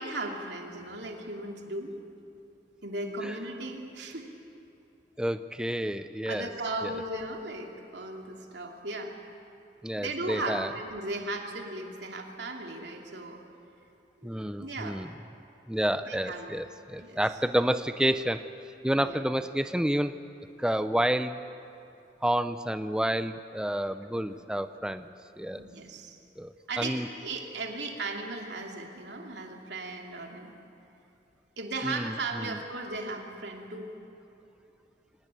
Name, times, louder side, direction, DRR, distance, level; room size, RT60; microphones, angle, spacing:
voice 1, 0.0-1.9 2.8-4.3 6.3-9.1 10.0-13.4 14.2-14.3 14.6-15.0 16.0-17.2 18.9-19.2 24.1-24.4 25.5-26.2 26.7-30.5 31.6-33.9, right 2 dB, 70° right, 1 dB, 2.9 m, -37 dB
voice 2, 5.2-6.5 6.8-7.0 9.8-10.7 14.2-15.1 15.7-18.4 18.8-20.1 20.6-21.4 22.2-25.1 25.4-25.6 26.4-27.1 31.8-32.5, equal, 5° right, 10 dB, 0.5 m, -29 dB
24.0 x 19.0 x 9.1 m, 2.9 s
head